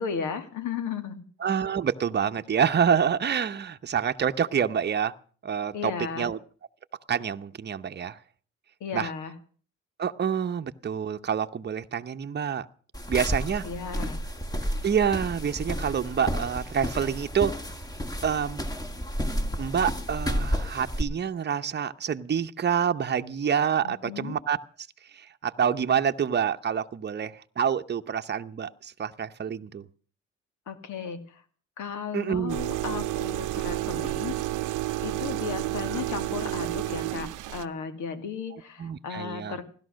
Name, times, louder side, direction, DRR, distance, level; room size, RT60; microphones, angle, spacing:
voice 1, 0.0-1.2 5.7-6.3 8.8-9.3 13.6-14.2 23.8-24.4 30.7-31.4 31.8-34.4 35.0-39.6, left 6 dB, 75° left, 9 dB, 2.3 m, -35 dB
voice 2, 1.4-5.1 5.4-6.4 7.1-8.2 8.9-9.1 10.0-12.7 13.1-13.6 14.8-17.5 18.2-18.6 19.6-24.6 25.4-29.9 32.1-32.6 38.8-39.6, right 7 dB, 35° right, 8 dB, 0.9 m, -27 dB
sound 1, 12.9-21.0, equal, 10° left, 1.9 m, -31 dB
sound 2, 32.5-37.7, right 17 dB, 90° right, 0.8 m, -30 dB
16.5 x 12.0 x 6.4 m, 0.43 s
cardioid pair, 90°, 30 cm